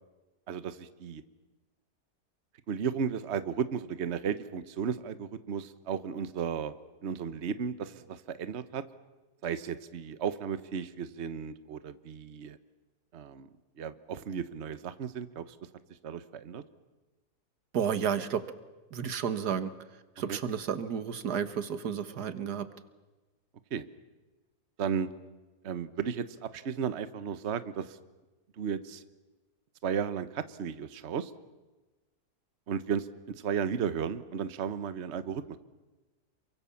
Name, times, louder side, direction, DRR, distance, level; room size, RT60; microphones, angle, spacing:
voice 1, 0.5-1.2 2.7-6.7 7.0-8.8 9.4-12.6 13.1-13.5 13.8-15.5 16.0-16.6 20.3-20.4 23.7-23.8 24.8-25.1 25.6-28.0 28.6-29.0 29.8-31.3 32.7-33.1 33.4-35.6, right 7 dB, 50° right, 13 dB, 1.2 m, -34 dB
voice 2, 17.7-18.4 18.9-19.7 20.2-22.7, right 7 dB, 90° right, 12 dB, 1.9 m, -31 dB
28.0 x 23.5 x 7.1 m, 1.2 s
omnidirectional pair, 1.7 m